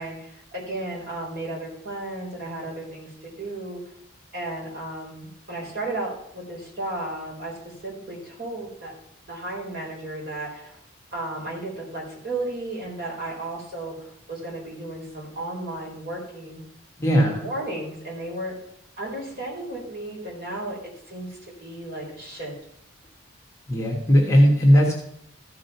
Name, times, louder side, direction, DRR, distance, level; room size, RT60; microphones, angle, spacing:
voice 1, 0.0-3.8 4.3-7.5 7.8-8.9 9.3-10.8 11.1-16.6 17.2-18.5 19.0-20.8 21.1-22.5, right 2 dB, 45° right, -3 dB, 4.0 m, -34 dB
voice 2, 17.0-17.4 23.7-24.9, equal, 15° left, -1 dB, 1.4 m, -17 dB
14.0 x 5.0 x 5.8 m, 0.70 s
head